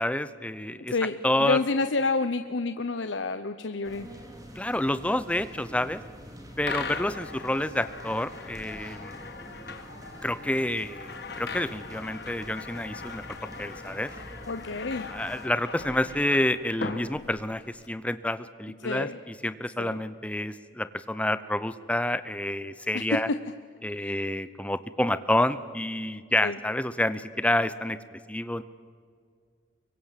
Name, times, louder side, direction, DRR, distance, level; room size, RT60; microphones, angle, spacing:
voice 1, 0.0-0.9 1.2-1.6 4.6-6.0 6.6-9.2 10.2-13.2 13.6-14.1 15.1-23.3 23.8-28.6, left 1 dB, 5° left, 13 dB, 0.7 m, -28 dB
voice 2, 0.9-4.1 14.5-15.1 18.8-19.2 19.8-20.0 22.9-23.4 24.0-24.1 26.4-26.6, left 3 dB, 70° left, 9 dB, 0.8 m, -29 dB
sound 1, 3.8-15.5, equal, 20° right, 2.6 m, -46 dB
sound 2, 6.7-17.9, left 4 dB, 55° left, 1.6 m, -40 dB
25.0 x 23.0 x 7.5 m, 2.1 s
head